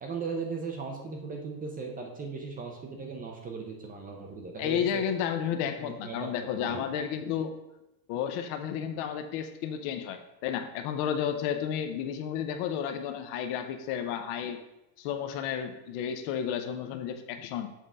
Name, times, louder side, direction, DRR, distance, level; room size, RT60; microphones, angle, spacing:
voice 1, 0.0-5.0 5.8-6.8, right 4 dB, 15° right, 2 dB, 0.6 m, -37 dB
voice 2, 4.6-7.6 8.1-14.6 15.0-17.7, left 8 dB, 50° left, 7 dB, 0.8 m, -32 dB
7.4 x 3.8 x 5.4 m, 0.91 s
cardioid pair, 165°, 50 cm